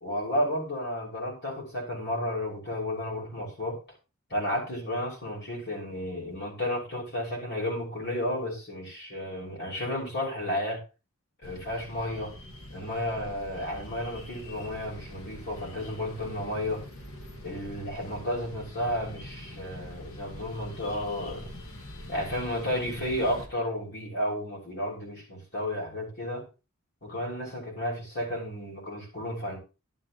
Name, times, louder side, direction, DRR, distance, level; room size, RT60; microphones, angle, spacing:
voice 1, 0.0-3.8 4.3-10.8 11.4-12.3 12.7-16.8 17.4-21.5 22.1-26.4 27.0-29.6, left 1 dB, 50° left, -1 dB, 6.1 m, -32 dB
sound 1, 11.4-23.5, left 1 dB, 75° left, 2.0 m, -44 dB
12.0 x 11.0 x 3.1 m, 0.30 s
head